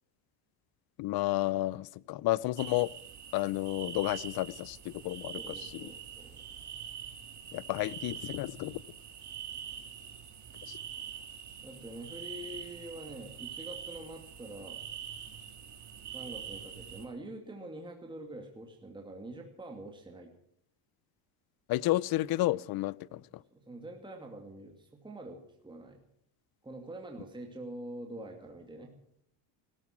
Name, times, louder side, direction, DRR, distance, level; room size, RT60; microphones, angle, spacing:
voice 1, 1.0-2.9 3.3-5.9 7.5-8.8 10.7-10.8 21.7-23.2, left 17 dB, 50° left, 24 dB, 0.6 m, -31 dB
sound 1, 2.6-17.1, right 8 dB, 35° right, 3.2 m, -44 dB
voice 2, 5.3-6.4 11.6-14.8 16.1-20.3 23.1-23.2 23.5-26.0 26.6-28.9, right 1 dB, 10° right, 2 dB, 2.4 m, -45 dB
16.5 x 14.0 x 6.1 m, 0.69 s
cardioid pair, 125°, 47 cm